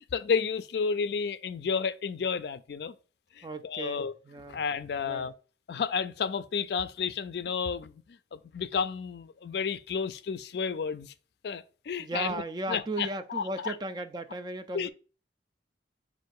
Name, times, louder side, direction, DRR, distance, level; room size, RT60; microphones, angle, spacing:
voice 1, 0.1-2.9 3.4-4.1 4.5-5.3 5.7-11.1 11.4-12.4 12.7-13.7 14.7-14.9, left 6 dB, 65° left, 0.4 m, -31 dB
voice 2, 3.4-4.6 5.0-5.3 12.0-14.9, right 2 dB, 25° right, 0.3 m, -36 dB
4.4 x 2.5 x 4.6 m
head